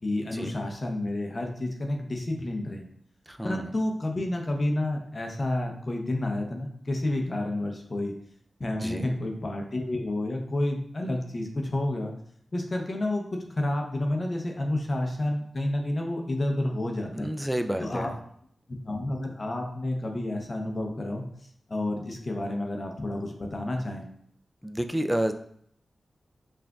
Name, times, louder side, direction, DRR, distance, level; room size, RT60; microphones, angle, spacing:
voice 1, 0.0-2.8 3.4-8.1 8.6-12.1 12.5-13.2 13.5-17.3 17.8-18.1 18.8-21.2 21.7-24.1, left 1 dB, 40° left, 2 dB, 0.7 m, -30 dB
voice 2, 3.3-3.7 8.8-9.1 17.1-18.2 24.6-25.3, equal, 5° right, 6 dB, 0.4 m, -30 dB
5.8 x 2.5 x 2.3 m, 0.66 s
wide cardioid pair, 75°, 0 cm